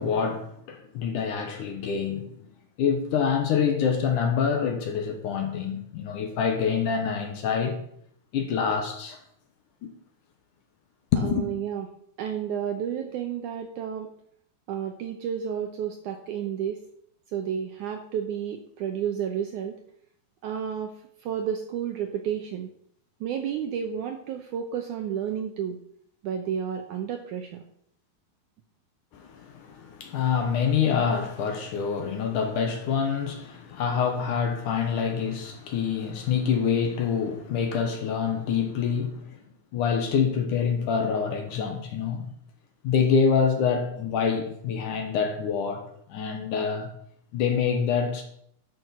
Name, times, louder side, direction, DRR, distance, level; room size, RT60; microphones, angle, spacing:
voice 1, 0.0-2.3 2.8-7.8 8.3-9.2 9.8-9.9 11.1-11.5 29.1-39.4 39.7-42.3 42.8-46.9 47.3-48.2, left 6 dB, 65° left, 2.4 m, -26 dB
voice 2, 11.2-11.9 12.2-14.1 14.7-16.8 17.3-19.8 20.4-20.9 21.2-22.7 23.2-25.8 26.2-27.6, right 8 dB, 75° right, 1.9 m, -31 dB
11.5 x 6.2 x 5.9 m
omnidirectional pair, 4.4 m